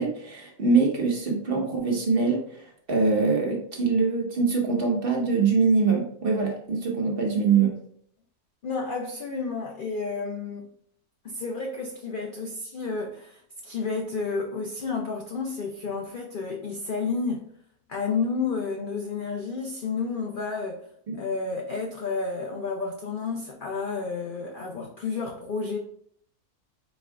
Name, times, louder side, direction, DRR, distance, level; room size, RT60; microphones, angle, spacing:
voice 1, 0.0-7.8 21.1-21.2, right 4 dB, 45° right, 0 dB, 0.9 m, -23 dB
voice 2, 8.6-10.7 11.2-17.4 17.9-20.9 21.2-25.8, left 4 dB, 80° left, 1 dB, 0.4 m, -31 dB
4.4 x 2.3 x 4.5 m, 0.64 s
omnidirectional pair, 1.6 m